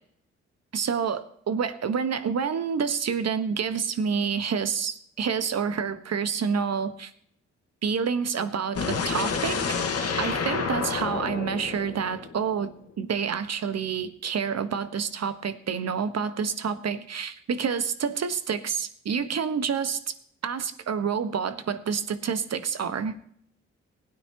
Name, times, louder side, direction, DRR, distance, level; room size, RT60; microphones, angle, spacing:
voice 1, 0.7-7.1 7.8-9.6 10.2-20.1 20.4-23.3, right 6 dB, 50° right, 11 dB, 1.4 m, -28 dB
sound 1, 8.7-12.7, left 5 dB, 45° left, 1.8 m, -29 dB
20.0 x 9.5 x 3.0 m, 0.66 s
hypercardioid pair, 40°, 34 cm